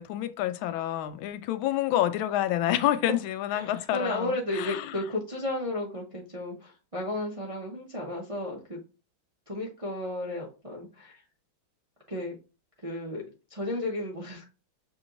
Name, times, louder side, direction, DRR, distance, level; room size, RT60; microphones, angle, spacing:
voice 1, 0.0-4.8, left 12 dB, 90° left, 1.4 m, -28 dB
voice 2, 3.5-8.8 9.5-11.2 12.1-12.3 12.8-13.2 13.5-14.4, left 1 dB, 35° right, 0.5 m, -33 dB
6.2 x 3.0 x 2.6 m
omnidirectional pair, 2.2 m